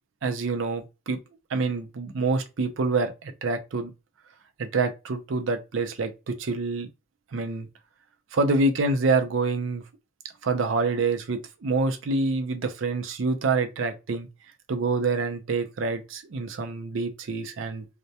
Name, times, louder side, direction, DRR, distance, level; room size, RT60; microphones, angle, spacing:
voice 1, 0.2-1.2 1.5-3.9 4.6-6.9 7.3-7.7 8.3-9.8 10.4-14.3 14.7-17.8, right 3 dB, 75° right, 0.5 m, -26 dB
2.2 x 2.1 x 2.7 m
head